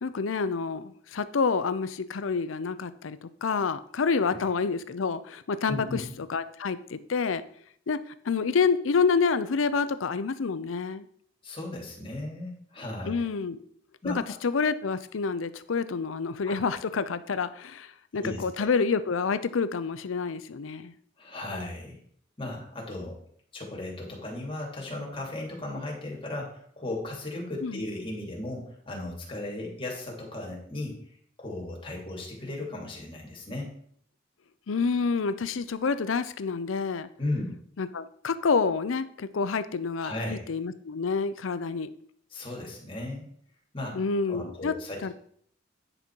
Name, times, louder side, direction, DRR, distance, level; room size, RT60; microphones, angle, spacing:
voice 1, 0.0-6.0 6.3-7.4 7.9-8.0 8.3-11.1 13.1-13.6 14.0-20.9 27.6-27.8 34.7-37.1 37.8-41.9 43.9-44.7 45.0-45.1, left 5 dB, 90° left, 14 dB, 0.6 m, -28 dB
voice 2, 5.7-6.0 11.4-13.2 14.0-14.4 16.5-16.6 18.1-18.7 21.2-22.0 22.4-23.2 23.5-31.0 31.4-33.7 37.2-37.6 40.0-40.4 42.3-43.3 43.7-44.0 44.3-45.1, left 2 dB, 30° left, -2 dB, 2.5 m, -36 dB
10.0 x 5.3 x 4.5 m, 0.63 s
head